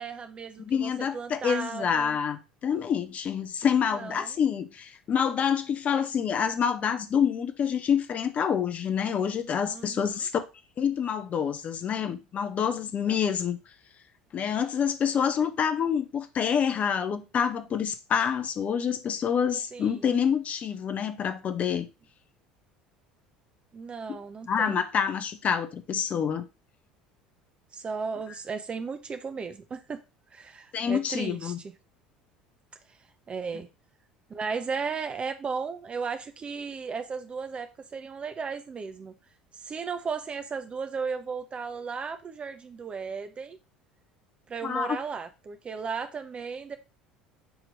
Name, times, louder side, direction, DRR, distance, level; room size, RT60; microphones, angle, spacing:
voice 1, 0.0-2.2 4.0-4.4 9.7-10.2 13.1-13.2 19.7-20.1 23.7-24.9 27.7-30.0 30.3-31.7 32.9-33.7 34.3-39.1 39.5-43.6 44.5-46.8, right 5 dB, 25° right, 0.5 m, -35 dB
voice 2, 0.6-10.4 10.8-13.6 14.3-21.9 24.5-26.5 30.7-31.6 44.6-45.0, left 7 dB, 35° left, 0.8 m, -27 dB
7.0 x 3.0 x 5.0 m
figure-of-eight pair, 65°, 4 cm